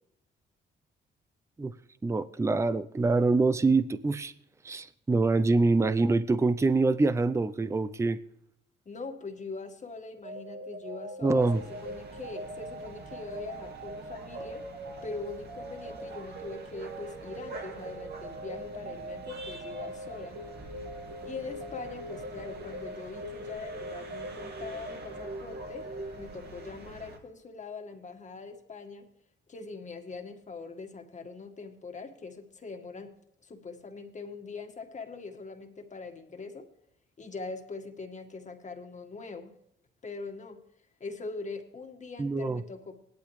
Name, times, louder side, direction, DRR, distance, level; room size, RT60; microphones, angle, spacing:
voice 1, 2.0-4.3 4.6-8.2 11.2-11.6 42.2-42.6, right 3 dB, 15° right, 13 dB, 0.5 m, -25 dB
voice 2, 8.9-14.6 15.0-20.4 21.3-29.1 29.5-33.1 33.4-36.7 37.2-39.5 40.0-40.6 41.0-43.0, left 4 dB, 35° left, 5 dB, 1.8 m, -42 dB
sound 1, 10.2-26.8, right 1 dB, 75° right, 2.8 m, -42 dB
sound 2, 11.4-27.2, right 3 dB, 55° right, 2.3 m, -48 dB
17.5 x 12.0 x 3.3 m, 0.75 s
cardioid pair, 90°, 20 cm